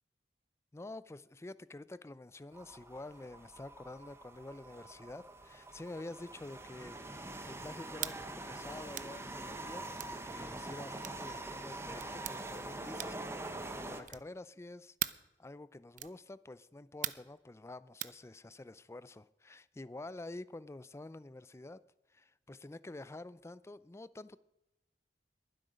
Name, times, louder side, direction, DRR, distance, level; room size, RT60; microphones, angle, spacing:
voice 1, 0.7-7.0 7.5-21.8 22.1-24.4, left 2 dB, 15° left, 0.4 m, -48 dB
sound 1, 2.5-14.0, right 2 dB, 15° right, 0.9 m, -44 dB
sound 2, 8.0-8.2 8.9-9.2 10.0-10.2 11.0-11.2 12.0-12.4 13.0-13.3 14.0-14.4 15.0-15.3 16.0-16.2 17.0-17.3 18.0-18.2, right 12 dB, 45° right, 0.5 m, -40 dB
21.5 x 7.8 x 5.2 m
head